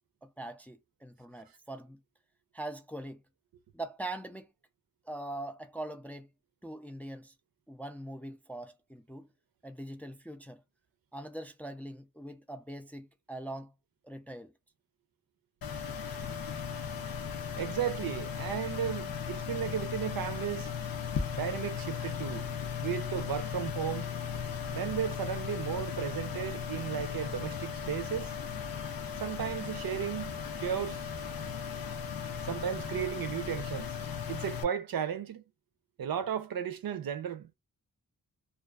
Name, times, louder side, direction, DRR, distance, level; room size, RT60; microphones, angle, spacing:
voice 1, 0.2-2.0 2.5-3.2 3.7-4.5 5.1-6.3 6.6-7.3 7.7-9.3 9.6-10.6 11.1-13.7 14.0-14.5, right 1 dB, 5° left, 0.3 m, -42 dB
sound 1, 15.6-34.6, left 7 dB, 75° left, 0.6 m, -37 dB
voice 2, 17.6-20.7 21.3-22.5 22.8-24.1 24.7-28.3 28.7-28.9 29.2-31.0 32.4-34.0 34.3-35.4 36.0-37.5, right 9 dB, 80° right, 0.5 m, -35 dB
2.4 x 2.3 x 2.2 m
wide cardioid pair, 80°, 35 cm